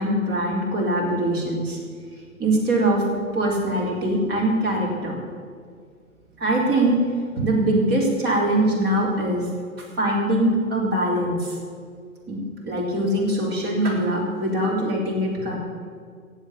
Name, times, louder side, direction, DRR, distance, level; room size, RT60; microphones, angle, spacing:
voice 1, 0.0-1.8 2.4-3.0 3.3-5.2 6.4-9.5 10.0-11.6 12.3-15.6, right 1 dB, 25° right, -3 dB, 4.2 m, -22 dB
16.0 x 8.3 x 8.6 m, 2.1 s
figure-of-eight pair, 120°, 42 cm